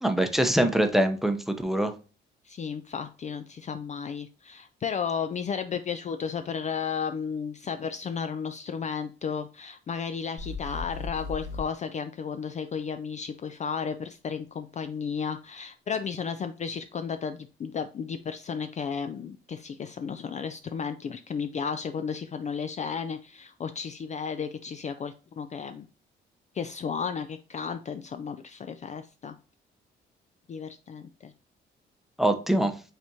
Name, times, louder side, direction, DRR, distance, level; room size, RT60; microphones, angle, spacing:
voice 1, 0.0-1.9 32.2-32.7, right 1 dB, ahead, 7 dB, 0.7 m, -23 dB
voice 2, 2.4-25.9 26.5-29.4 30.5-31.3, left 6 dB, 35° left, 8 dB, 0.4 m, -33 dB
sound 1, 10.4-11.6, left 4 dB, 85° left, 1.9 m, -36 dB
5.5 x 3.5 x 2.7 m, 0.35 s
cardioid pair, 90°, 20 cm